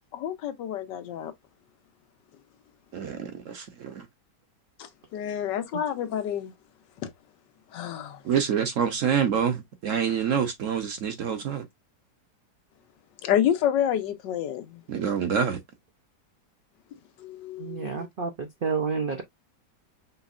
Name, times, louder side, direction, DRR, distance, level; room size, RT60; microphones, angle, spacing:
voice 1, 0.2-1.3 4.8-6.5 7.0-7.1 7.7-8.2 13.2-14.8 17.2-18.1, left 10 dB, 85° left, 1.4 m, -28 dB
voice 2, 2.9-4.0 8.2-11.6 14.9-15.6, right 7 dB, 55° right, 1.0 m, -27 dB
voice 3, 17.6-19.2, right 5 dB, 70° right, 0.5 m, -30 dB
5.5 x 3.1 x 2.4 m
omnidirectional pair, 1.9 m